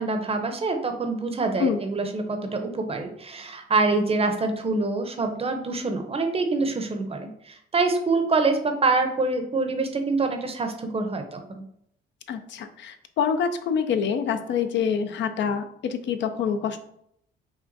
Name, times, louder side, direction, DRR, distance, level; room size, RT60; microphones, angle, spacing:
voice 1, 0.0-11.7, right 3 dB, 30° right, 6 dB, 0.6 m, -25 dB
voice 2, 12.3-16.8, left 7 dB, 65° left, 9 dB, 0.4 m, -26 dB
5.9 x 2.2 x 2.6 m, 0.73 s
cardioid pair, 90°, 20 cm